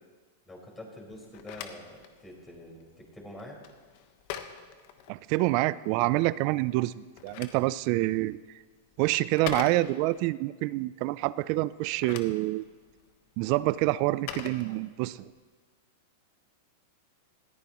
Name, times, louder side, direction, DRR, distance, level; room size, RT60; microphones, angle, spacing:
voice 1, 0.4-3.6, left 1 dB, 15° left, -2 dB, 4.8 m, -46 dB
Telephone, 1.1-5.6 6.9-10.3 11.7-15.3, left 9 dB, 55° left, 1.2 m, -44 dB
voice 2, 5.1-8.4 9.0-12.7 13.4-15.3, right 19 dB, 50° right, 18 dB, 0.3 m, -27 dB
19.5 x 14.5 x 3.0 m, 1.5 s
hypercardioid pair, 120°, 0 cm